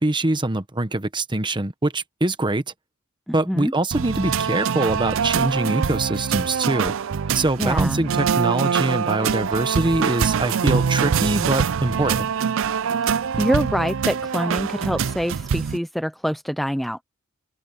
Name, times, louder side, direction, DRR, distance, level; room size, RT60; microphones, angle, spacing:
voice 1, 0.0-2.6 3.3-6.9 7.3-12.3, right 2 dB, 20° right, 1.1 m, -23 dB
voice 2, 3.3-3.7 7.6-8.0 13.1-17.0, equal, ahead, 0.5 m, -25 dB
sound 1, 3.9-15.8, right 6 dB, 65° right, 0.5 m, -24 dB
open air
head